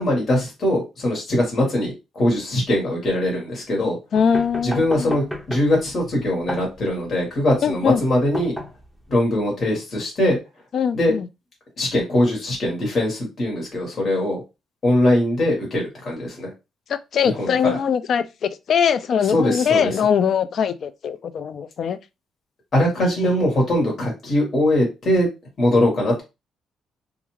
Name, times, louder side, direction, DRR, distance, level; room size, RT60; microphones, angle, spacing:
voice 1, 0.0-4.0 4.6-8.5 9.1-10.4 10.9-11.1 11.8-14.4 14.8-16.5 17.2-17.8 19.3-19.9 22.7-25.3 25.6-26.2, left 1 dB, 45° left, 1.4 m, -21 dB
voice 2, 4.1-5.2 7.6-8.0 10.7-11.3 16.9-22.0 23.2-23.3, left 7 dB, 60° left, 0.3 m, -22 dB
sound 1, 4.2-9.2, equal, ahead, 0.6 m, -34 dB
2.4 x 2.4 x 3.1 m
cardioid pair, 90°, 0 cm